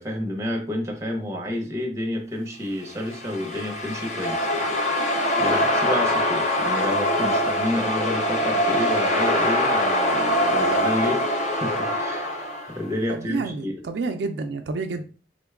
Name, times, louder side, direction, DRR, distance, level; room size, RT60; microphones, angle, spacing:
voice 1, 0.0-4.5 5.4-11.2 11.5-12.4 12.7-13.8, left 1 dB, 15° right, 1 dB, 0.7 m, -30 dB
sound 1, 3.0-12.8, left 1 dB, 40° left, 0.6 m, -23 dB
voice 2, 13.1-15.0, right 4 dB, 70° right, 6 dB, 0.4 m, -29 dB
3.8 x 2.2 x 3.4 m, 0.39 s
head